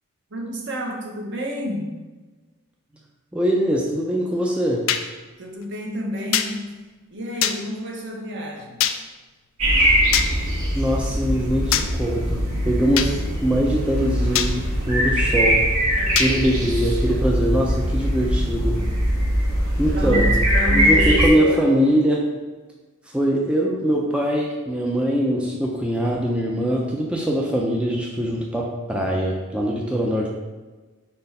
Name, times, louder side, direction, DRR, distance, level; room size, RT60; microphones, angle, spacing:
voice 1, 0.3-1.9 5.4-6.8 7.1-8.9 15.9-17.3 18.7-19.0 19.9-21.8, left 1 dB, 55° right, 0 dB, 1.0 m, -30 dB
voice 2, 3.3-4.8 10.7-15.6 16.2-18.8 19.8-20.3 20.7-22.3 23.1-30.3, equal, 5° right, -2 dB, 0.5 m, -22 dB
sound 1, 4.9-5.0 6.3-6.5 7.4-7.6 8.8-9.0 10.1-10.3 11.7-11.9 13.0-13.1 14.3-14.5 16.2-16.3, left 10 dB, 65° left, 0.4 m, -21 dB
sound 2, 9.6-21.3, equal, 80° right, 1.7 m, -21 dB
4.4 x 4.3 x 5.3 m, 1.3 s
head